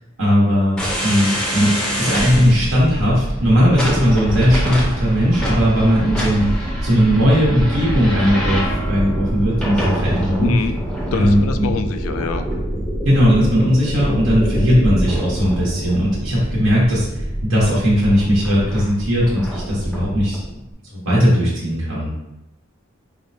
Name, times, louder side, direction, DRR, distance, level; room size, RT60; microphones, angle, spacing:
voice 1, 0.2-10.5 11.1-11.7 13.0-20.4 20.9-22.1, equal, 75° right, -7 dB, 1.0 m, -18 dB
sound 1, 0.8-20.5, equal, 5° left, 0.6 m, -24 dB
voice 2, 10.4-10.8 11.1-12.5, left 5 dB, 80° left, 8 dB, 0.3 m, -25 dB
5.1 x 2.1 x 2.6 m, 0.91 s
head